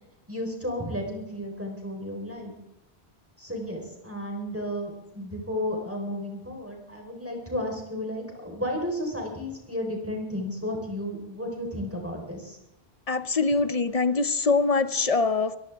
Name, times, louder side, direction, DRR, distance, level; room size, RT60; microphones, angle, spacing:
voice 1, 0.3-2.5 3.4-12.6, left 1 dB, 10° right, 0 dB, 4.0 m, -33 dB
voice 2, 13.1-15.6, left 4 dB, 40° left, 13 dB, 0.6 m, -23 dB
22.5 x 15.5 x 3.5 m, 0.90 s
omnidirectional pair, 1.1 m